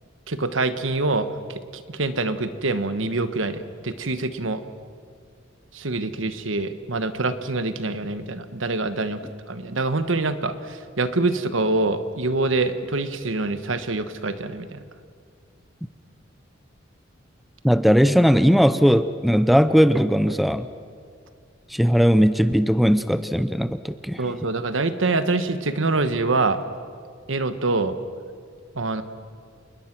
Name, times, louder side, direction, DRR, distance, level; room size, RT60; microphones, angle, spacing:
voice 1, 0.3-1.3 1.7-4.6 5.7-9.2 9.5-14.8 24.2-26.6 27.3-28.0 28.7-29.0, right 3 dB, 75° right, 10 dB, 1.3 m, -25 dB
voice 2, 17.6-20.7 21.7-24.2, equal, ahead, 12 dB, 0.5 m, -18 dB
28.0 x 21.0 x 6.0 m, 2.1 s
head